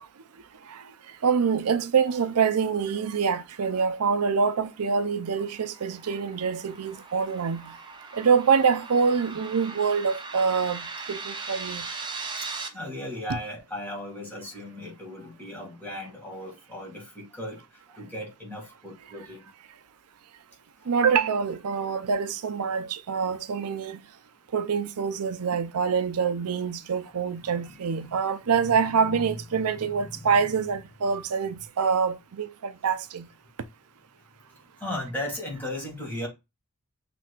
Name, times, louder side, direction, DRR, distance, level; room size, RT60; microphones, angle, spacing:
voice 1, 1.2-7.8 8.1-11.9 13.3-13.4 20.9-24.0 24.5-33.3, right 6 dB, 90° right, 0.5 m, -25 dB
sound 1, 5.0-12.7, right 4 dB, 20° right, 0.6 m, -39 dB
voice 2, 12.7-17.6 17.9-19.5 27.4-28.3 28.6-30.5 34.8-36.3, left 1 dB, 10° left, 2.1 m, -37 dB
5.8 x 3.4 x 2.4 m
head